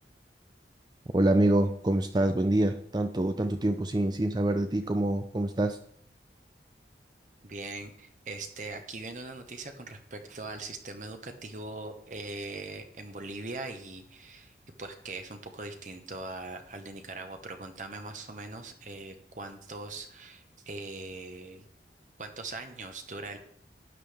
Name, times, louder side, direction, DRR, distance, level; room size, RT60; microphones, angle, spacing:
voice 1, 1.1-5.8, right 1 dB, 25° right, 7 dB, 0.5 m, -26 dB
voice 2, 7.4-21.7 22.2-23.4, right 3 dB, 45° right, 6 dB, 1.2 m, -41 dB
12.5 x 9.7 x 3.5 m, 0.64 s
head